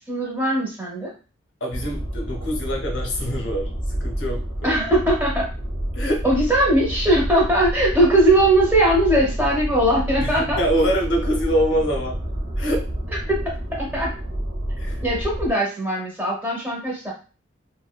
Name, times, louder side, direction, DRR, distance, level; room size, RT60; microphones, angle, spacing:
voice 1, 0.1-1.1 4.6-5.5 6.2-10.6 13.3-13.4 13.7-14.1 15.0-17.1, right 1 dB, 10° right, -4 dB, 0.8 m, -20 dB
voice 2, 1.6-4.8 5.9-6.2 10.2-12.2 12.6-12.8 14.8-15.0, equal, 65° left, 2 dB, 0.6 m, -25 dB
sound 1, 1.7-15.5, equal, 35° right, 0.4 m, -29 dB
2.6 x 2.1 x 2.2 m, 0.34 s
head